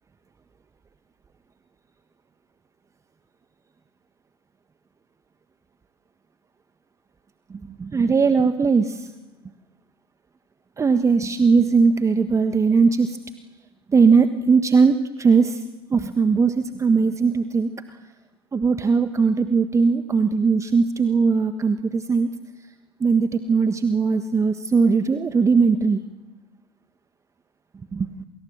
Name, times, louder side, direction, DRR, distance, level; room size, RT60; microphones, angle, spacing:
voice 1, 7.5-9.1 10.8-13.2 13.9-15.6 15.9-18.0 18.5-22.3 23.0-26.0 27.9-28.3, right 5 dB, 20° right, 10 dB, 1.4 m, -19 dB
28.0 x 25.5 x 7.5 m, 1.1 s
figure-of-eight pair, 65°, 14 cm